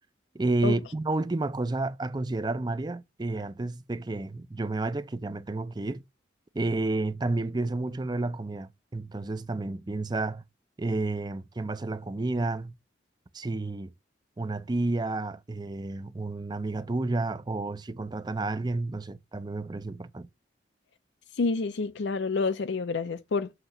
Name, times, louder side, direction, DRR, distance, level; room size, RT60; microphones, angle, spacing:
voice 1, 0.3-6.0 6.5-10.4 10.8-12.7 13.3-13.9 14.4-20.3, right 2 dB, 20° right, 0.5 m, -31 dB
voice 2, 21.4-23.5, left 4 dB, 70° left, 0.5 m, -28 dB
7.9 x 2.9 x 5.8 m
head